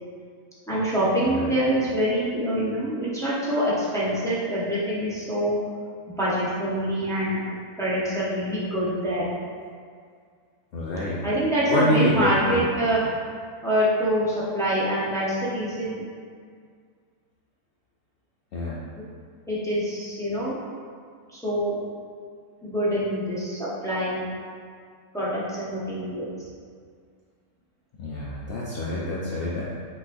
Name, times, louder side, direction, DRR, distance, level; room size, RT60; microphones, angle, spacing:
voice 1, 0.7-5.6 6.2-9.3 11.2-13.0 13.6-16.0 19.0-19.1 19.5-20.6 21.3-21.7 22.6-24.3 25.1-26.3, equal, 5° left, -9 dB, 0.5 m, -25 dB
voice 2, 10.7-11.2 11.7-12.6 18.5-18.8 28.0-29.6, left 1 dB, 85° left, -6 dB, 0.5 m, -26 dB
6.0 x 3.1 x 2.5 m, 2.1 s
omnidirectional pair, 1.6 m